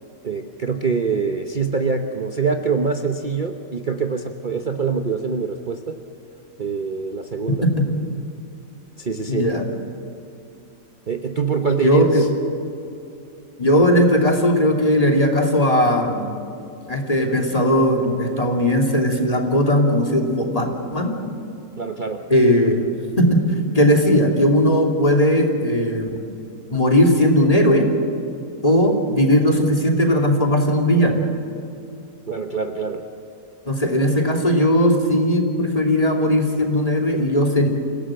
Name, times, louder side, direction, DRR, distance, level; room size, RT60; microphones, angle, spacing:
voice 1, 0.2-6.0 6.6-7.7 9.0-9.5 11.1-12.3 21.8-22.3 32.3-33.0, right 5 dB, 35° right, 5 dB, 1.1 m, -24 dB
voice 2, 9.3-9.6 11.8-12.2 13.6-16.4 16.9-21.1 22.3-22.9 23.2-23.4 23.7-26.2 26.7-27.9 28.6-31.2 33.7-37.7, equal, 25° left, 1 dB, 2.8 m, -18 dB
28.0 x 17.5 x 7.7 m, 2.8 s
omnidirectional pair, 1.6 m